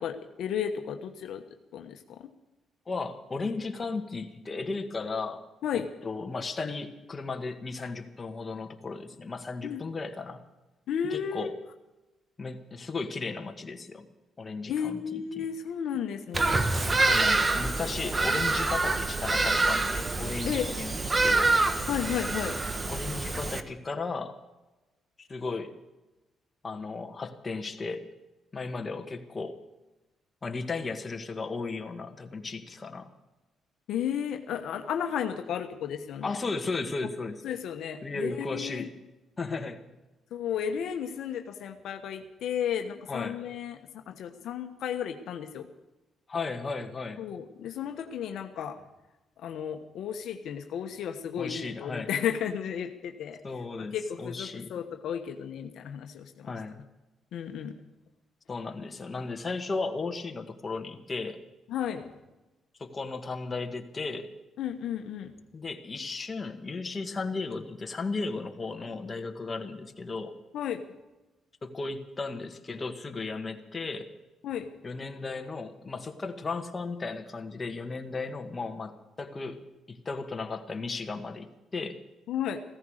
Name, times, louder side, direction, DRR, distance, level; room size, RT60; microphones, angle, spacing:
voice 1, 0.0-1.4 1.7-2.3 5.6-5.9 9.6-9.8 10.9-11.5 14.7-16.6 20.4-20.8 21.9-22.6 33.9-36.3 37.4-38.9 40.3-45.7 47.2-48.8 49.4-53.4 53.9-56.6 57.3-57.7 61.7-62.1 64.6-65.3 70.5-70.8 74.4-74.7 82.3-82.6, left 8 dB, 75° left, 6 dB, 1.2 m, -33 dB
voice 2, 2.9-5.4 5.7-10.4 11.1-11.6 12.4-14.1 14.4-15.5 17.1-21.6 22.9-24.4 25.2-25.7 26.6-28.0 28.5-29.6 30.4-33.1 36.2-37.4 38.0-38.9 39.4-39.8 43.1-43.4 46.3-47.2 51.4-52.1 53.4-54.7 56.4-56.8 58.5-61.4 62.8-64.3 65.5-70.4 71.6-74.1 74.8-79.6 79.9-82.0, left 3 dB, 30° left, 5 dB, 1.7 m, -35 dB
Bird vocalization bird call bird song, 16.3-23.6, right 2 dB, 25° right, 1.2 m, -26 dB
16.0 x 14.0 x 6.5 m, 1.0 s
cardioid pair, 90°, 0 cm